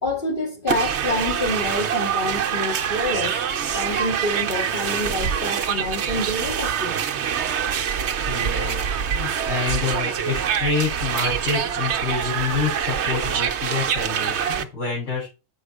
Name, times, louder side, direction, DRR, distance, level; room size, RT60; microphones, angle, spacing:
voice 1, 0.0-3.4 3.7-7.0, left 1 dB, 40° left, 3.1 m, -27 dB
sound 1, 0.7-14.6, right 8 dB, 60° right, 1.0 m, -25 dB
voice 2, 8.3-15.3, left 5 dB, 60° left, 6.2 m, -27 dB
7.8 x 6.5 x 4.7 m
omnidirectional pair, 1.4 m